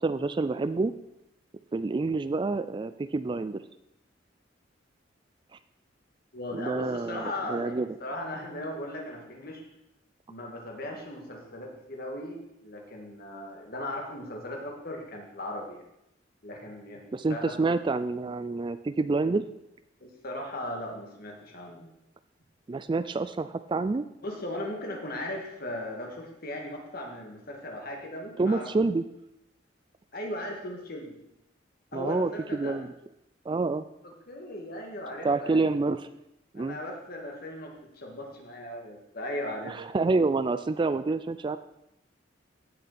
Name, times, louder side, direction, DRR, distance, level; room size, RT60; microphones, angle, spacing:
voice 1, 0.0-0.9 1.7-3.6 6.5-7.9 17.1-19.5 22.7-24.1 28.4-29.0 31.9-32.9 33.5-33.8 35.2-36.1 36.5-36.8 39.7-41.6, right 3 dB, 25° right, 13 dB, 0.3 m, -28 dB
voice 2, 6.3-9.6 10.3-15.8 16.4-17.5 20.0-21.9 24.2-28.7 30.1-31.2 31.9-32.8 34.3-35.5 36.5-39.8, left 1 dB, 50° left, 0 dB, 2.3 m, -37 dB
15.5 x 6.9 x 4.3 m, 0.86 s
head